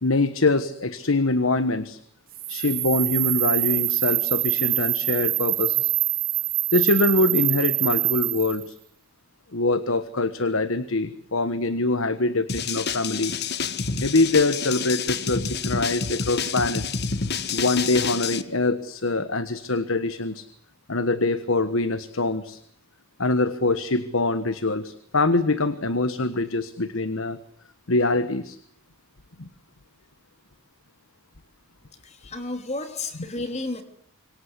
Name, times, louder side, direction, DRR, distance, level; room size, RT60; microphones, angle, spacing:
voice 1, 0.0-2.0 2.5-5.9 6.7-8.8 9.5-13.3 14.0-17.0 17.5-20.5 20.9-22.6 23.2-27.4 27.9-28.6 29.4-29.5, left 2 dB, 65° left, 13 dB, 1.3 m, -24 dB
sound 1, 2.3-8.6, right 16 dB, 40° right, 1.3 m, -24 dB
sound 2, 12.5-18.4, left 5 dB, 45° left, 1.5 m, -28 dB
voice 2, 32.0-33.8, left 2 dB, 30° left, 8 dB, 3.1 m, -32 dB
26.0 x 24.0 x 8.3 m, 0.66 s
head